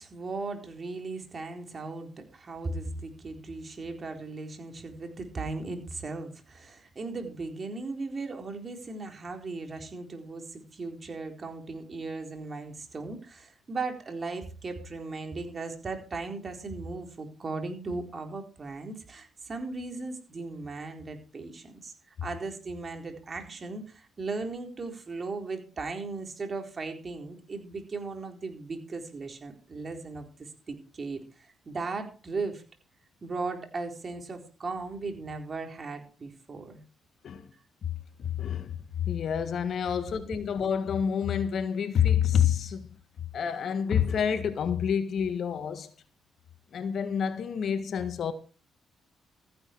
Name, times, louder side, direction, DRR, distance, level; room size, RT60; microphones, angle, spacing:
voice 1, 0.0-32.6 33.2-36.8, right 3 dB, 40° right, 4.1 m, -37 dB
voice 2, 38.2-42.9 43.3-45.9 46.7-48.3, left 8 dB, 60° left, 1.6 m, -28 dB
14.5 x 10.5 x 4.6 m
cardioid pair, 75°, 0 cm